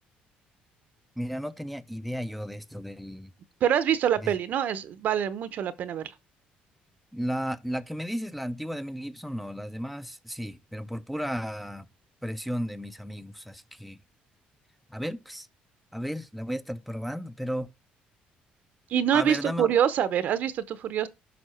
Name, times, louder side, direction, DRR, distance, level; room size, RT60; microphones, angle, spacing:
voice 1, 1.2-3.3 4.2-4.4 7.1-11.9 12.2-14.0 14.9-15.5 15.9-17.7 19.1-19.7, equal, ahead, 0.6 m, -34 dB
voice 2, 3.6-6.1 18.9-21.1, right 9 dB, 60° right, 0.9 m, -25 dB
9.4 x 5.8 x 4.4 m
cardioid pair, 120°, 3 cm